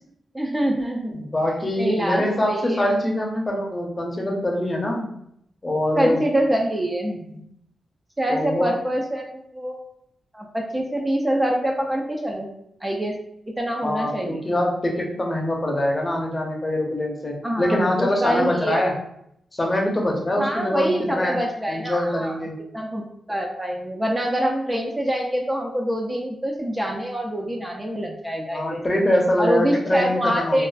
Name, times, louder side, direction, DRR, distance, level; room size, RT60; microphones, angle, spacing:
voice 1, 0.3-1.2 1.8-2.9 6.0-7.4 8.2-9.8 10.3-12.5 12.8-13.1 13.6-14.4 17.4-18.9 20.4-22.4 22.7-23.0 23.3-28.8 29.4-30.7, equal, 15° right, 1 dB, 0.3 m, -25 dB
voice 2, 1.1-5.1 5.6-6.2 8.3-8.7 13.8-19.0 19.5-21.4 21.7-22.6 28.5-30.7, left 1 dB, 30° left, 0 dB, 0.6 m, -24 dB
2.4 x 2.3 x 2.2 m, 0.74 s
cardioid pair, 75°, 0 cm